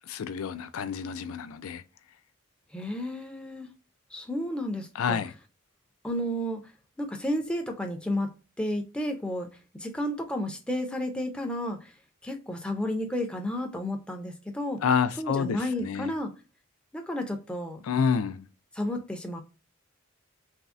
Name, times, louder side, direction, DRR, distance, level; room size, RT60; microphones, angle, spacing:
voice 1, 0.1-1.8 5.0-5.3 14.8-16.1 17.8-18.5, left 6 dB, 80° left, 0.4 m, -28 dB
voice 2, 2.7-3.7 4.1-5.2 6.0-6.6 7.0-8.3 8.6-9.5 9.7-11.9 12.2-14.8 15.2-16.3 16.9-17.8 18.7-19.4, left 1 dB, 5° left, 0.4 m, -32 dB
3.5 x 2.0 x 2.4 m
head